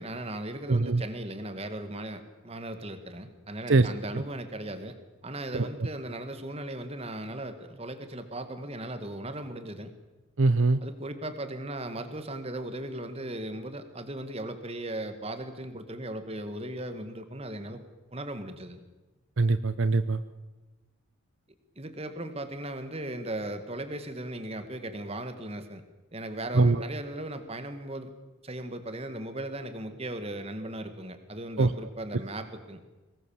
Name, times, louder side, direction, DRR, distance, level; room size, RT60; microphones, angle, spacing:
voice 1, 0.0-5.0 5.2-9.9 10.8-17.8 18.1-18.8 21.8-25.8 26.1-28.1 28.4-32.8, right 1 dB, 30° right, 9 dB, 2.0 m, -37 dB
voice 2, 0.7-1.0 3.7-3.9 5.5-5.7 10.4-10.8 19.4-20.2 26.5-26.8 31.6-31.7, right 3 dB, 65° right, 13 dB, 0.7 m, -22 dB
23.5 x 20.0 x 7.2 m, 1.2 s
head